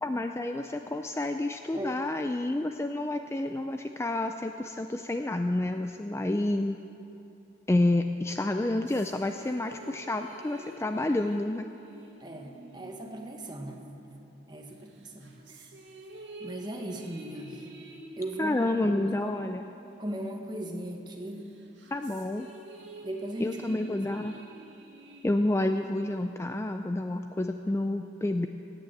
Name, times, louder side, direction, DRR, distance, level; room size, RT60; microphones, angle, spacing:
voice 1, 0.0-6.8 7.7-11.7 18.4-19.6 21.9-22.5 23.4-24.3 25.2-28.5, left 1 dB, 15° left, 6 dB, 0.3 m, -29 dB
sound 1, 8.4-14.4 14.9-20.9 21.3-26.4, right 1 dB, 80° right, 2.1 m, -49 dB
voice 2, 12.2-13.8 14.5-15.7 16.4-17.6 18.2-19.3 20.0-21.5 23.0-23.8, right 1 dB, 20° right, 2 dB, 1.3 m, -38 dB
17.5 x 9.0 x 7.9 m, 2.9 s
head